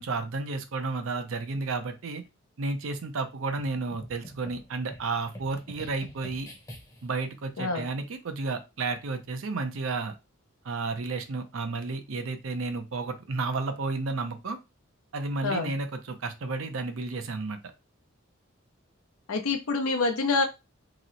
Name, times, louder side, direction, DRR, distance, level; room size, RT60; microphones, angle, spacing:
voice 1, 0.0-2.2 2.6-6.5 7.0-10.1 10.6-14.6 15.1-17.6, right 3 dB, 70° right, 0.6 m, -32 dB
sound 1, 3.6-7.2, equal, 15° left, 0.7 m, -46 dB
voice 2, 19.3-20.4, left 3 dB, 90° left, 0.6 m, -26 dB
2.9 x 2.0 x 3.8 m
head